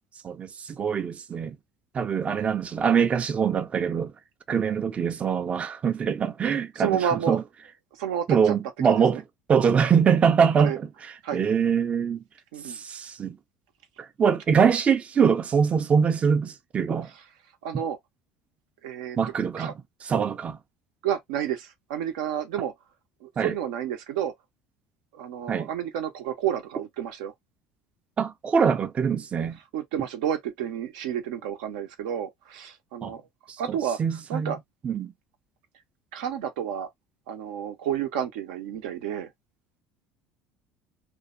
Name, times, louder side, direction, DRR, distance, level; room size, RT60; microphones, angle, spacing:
voice 1, 0.2-1.6 1.9-4.1 4.5-7.4 8.3-9.2 9.5-10.9 11.3-12.2 12.6-13.4 14.0-17.1 19.2-19.7 20.0-20.6 23.4-23.6 25.5-25.7 28.2-29.6 33.0-33.1 33.5-34.6 34.8-35.1, right 6 dB, 30° right, 0.4 m, -23 dB
voice 2, 6.8-7.4 8.0-8.5 8.8-9.2 10.6-10.8 11.2-11.5 12.5-12.8 17.6-18.0 18.8-19.2 19.6-19.7 21.0-22.7 23.2-24.3 25.1-27.3 29.7-33.2 33.6-34.0 34.3-34.6 36.1-36.9 37.3-39.3, right 9 dB, 85° right, 0.7 m, -30 dB
2.6 x 2.1 x 2.4 m
supercardioid pair, 95°, 4 cm